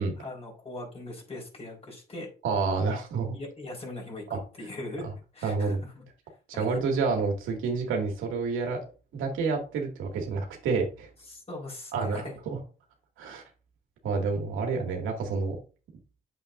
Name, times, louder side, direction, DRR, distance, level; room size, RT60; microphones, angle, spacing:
voice 1, 0.2-2.3 3.3-4.2 4.6-5.1 5.3-6.0 6.5-6.6 11.3-12.4, left 2 dB, 30° left, 4.6 m, -40 dB
voice 2, 2.4-3.4 4.3-4.4 5.4-5.8 6.5-8.8 9.1-11.1 11.9-12.6 13.2-13.4 14.0-15.6, right 4 dB, 85° right, 2.3 m, -29 dB
9.0 x 7.4 x 2.6 m
cardioid pair, 90°, 20 cm